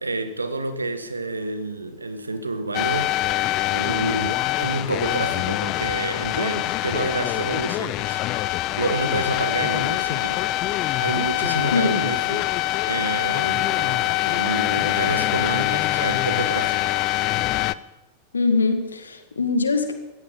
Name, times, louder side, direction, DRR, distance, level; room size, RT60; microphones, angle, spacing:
voice 1, 0.0-3.2 3.7-12.5 12.9-16.9, right 2 dB, 80° right, 1.5 m, -29 dB
sound 1, 2.7-17.7, left 17 dB, 40° left, 0.6 m, -24 dB
voice 2, 11.7-12.0 18.3-19.9, left 4 dB, 75° left, 2.0 m, -22 dB
17.0 x 14.5 x 5.4 m
figure-of-eight pair, 90°, 0 cm